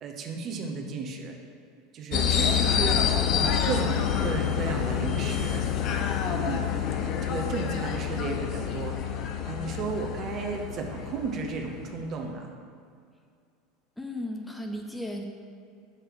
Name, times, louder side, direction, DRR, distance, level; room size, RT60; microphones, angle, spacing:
voice 1, 0.0-1.3 1.9-5.7 6.2-9.0 9.2-12.5, right 4 dB, 45° right, 2 dB, 0.9 m, -34 dB
sound 1, 2.1-12.0, left 8 dB, 50° left, 0.6 m, -27 dB
voice 2, 14.0-15.2, left 1 dB, 5° left, 2 dB, 0.6 m, -35 dB
6.6 x 3.3 x 5.8 m, 2.3 s
hypercardioid pair, 75°, 0 cm